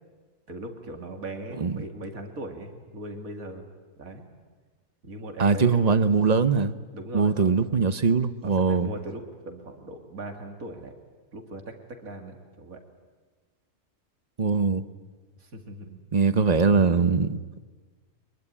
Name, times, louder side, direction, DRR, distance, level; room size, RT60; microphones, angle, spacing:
voice 1, 0.5-3.7 4.0-4.3 5.0-6.1 6.9-7.5 8.4-10.9 11.3-11.8 12.0-12.8 15.4-16.0, right 2 dB, 70° right, 4 dB, 2.8 m, -39 dB
voice 2, 5.4-6.8 7.1-8.9 14.4-14.9 16.1-17.4, right 5 dB, 35° right, 12 dB, 0.8 m, -22 dB
23.5 x 22.0 x 9.8 m, 1.4 s
omnidirectional pair, 1.5 m